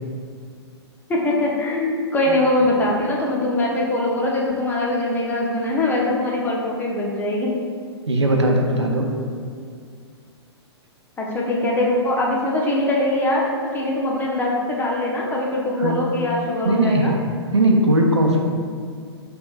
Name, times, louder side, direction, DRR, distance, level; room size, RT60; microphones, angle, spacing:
voice 1, 1.1-7.5 11.2-17.1, left 1 dB, 15° left, -3 dB, 0.7 m, -22 dB
voice 2, 8.1-9.1 15.8-16.1 16.6-17.1 17.5-18.4, right 1 dB, 85° right, 2 dB, 0.6 m, -18 dB
5.8 x 3.4 x 2.4 m, 2.1 s
figure-of-eight pair, 115°, 14 cm